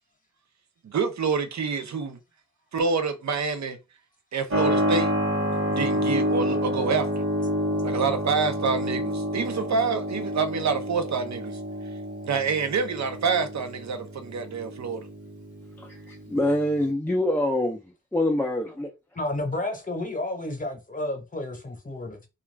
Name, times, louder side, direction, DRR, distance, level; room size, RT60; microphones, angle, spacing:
voice 1, 0.8-2.2 2.7-3.8 4.3-5.1 5.7-7.2 7.8-11.6 12.3-15.1, right 5 dB, 65° right, 0.6 m, -27 dB
Keyboard (musical), 4.5-16.9, equal, 50° right, 1.0 m, -29 dB
voice 2, 15.8-17.8 18.1-18.9, left 1 dB, 5° left, 0.4 m, -25 dB
voice 3, 19.1-22.3, left 2 dB, 25° left, 0.9 m, -31 dB
2.3 x 2.3 x 3.2 m
wide cardioid pair, 105°, 29 cm